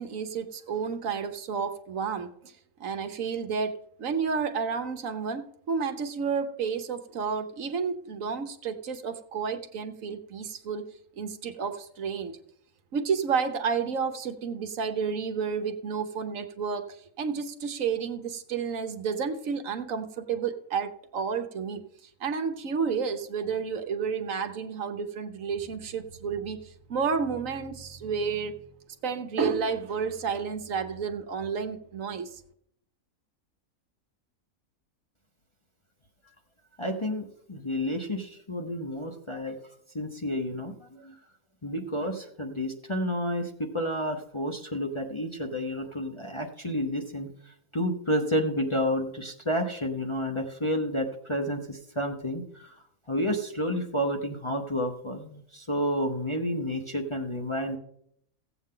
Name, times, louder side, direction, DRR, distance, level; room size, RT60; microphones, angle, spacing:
voice 1, 0.0-10.8 11.2-12.4 12.9-28.7 29.0-32.4, right 6 dB, 65° right, 8 dB, 1.2 m, -31 dB
voice 2, 36.8-39.6 39.9-41.2 41.6-57.8, equal, 25° left, 2 dB, 0.8 m, -30 dB
15.5 x 8.1 x 3.8 m, 0.71 s
omnidirectional pair, 1.5 m